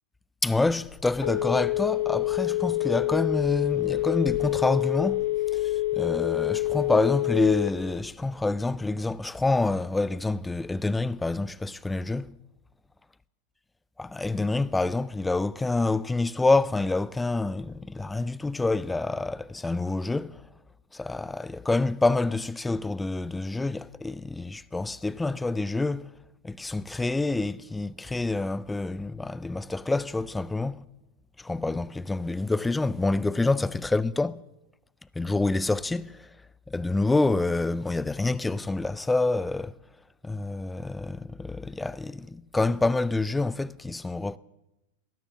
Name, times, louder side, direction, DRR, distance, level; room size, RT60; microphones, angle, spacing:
voice 1, 0.4-12.3 14.0-20.4 20.9-26.1 26.4-30.8 31.4-34.4 35.2-36.3 36.7-39.8 40.2-44.4, left 2 dB, 10° left, 0.5 m, -27 dB
Telephone, 0.7-8.0, left 16 dB, 55° left, 1.8 m, -27 dB
19.5 x 9.9 x 7.3 m
figure-of-eight pair, 90°, 0 cm